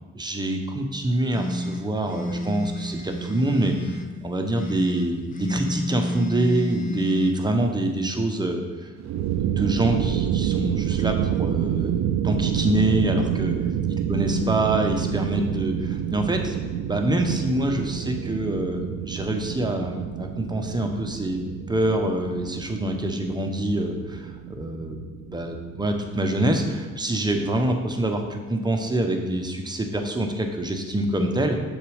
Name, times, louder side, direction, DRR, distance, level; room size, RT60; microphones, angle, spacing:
voice 1, 0.2-8.9 9.2-13.6 14.1-16.6 16.9-21.4 21.7-31.6, right 1 dB, 15° right, 3 dB, 0.8 m, -25 dB
sound 1, 1.3-4.1 4.5-7.3, equal, 25° left, 0.7 m, -30 dB
sound 2, 9.0-27.8, right 10 dB, 65° right, 0.4 m, -29 dB
6.6 x 4.1 x 4.9 m, 1.3 s
cardioid pair, 90°, 30 cm